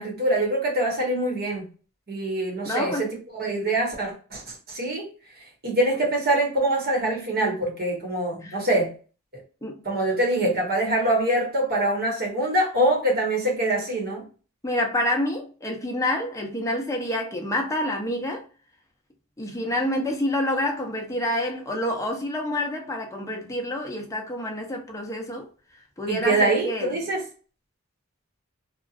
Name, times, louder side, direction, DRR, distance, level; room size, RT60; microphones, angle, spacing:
voice 1, 0.0-1.6 2.1-5.1 5.6-8.9 9.8-14.2 26.1-27.2, right 1 dB, 45° right, 1.3 m, -24 dB
voice 2, 2.6-3.1 8.4-8.6 9.6-9.8 14.6-18.4 19.4-25.5 26.0-26.9, left 1 dB, 15° left, 0.7 m, -28 dB
2.9 x 2.4 x 2.4 m
head